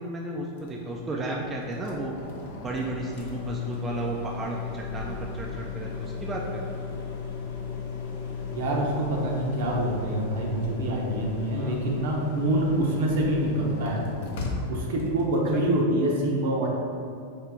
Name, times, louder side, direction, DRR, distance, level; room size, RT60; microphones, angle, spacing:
voice 1, 0.0-2.1 2.6-6.7 11.6-11.8 15.5-15.6, right 2 dB, 20° right, -2 dB, 0.4 m, -33 dB
sound 1, 0.5-15.7, left 5 dB, 55° left, 0.6 m, -36 dB
voice 2, 8.5-14.3 14.7-16.7, right 1 dB, 55° right, -1 dB, 0.7 m, -26 dB
4.4 x 2.8 x 3.5 m, 2.4 s
figure-of-eight pair, 90°, 0 cm